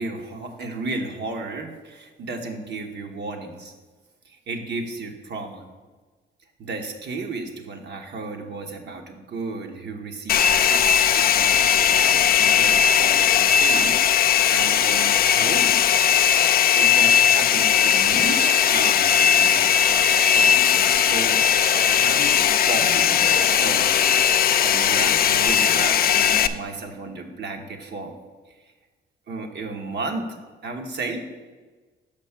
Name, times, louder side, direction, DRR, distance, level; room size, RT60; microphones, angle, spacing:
voice 1, 0.0-3.7 4.2-5.6 6.6-15.8 16.7-21.4 21.7-23.9 24.3-28.1 28.5-28.6 29.3-31.2, right 3 dB, 60° right, 4 dB, 1.3 m, -34 dB
Domestic sounds home sounds, 10.3-26.5, left 8 dB, 50° left, 0.4 m, -18 dB
6.4 x 5.2 x 7.1 m, 1.3 s
cardioid pair, 90°, 20 cm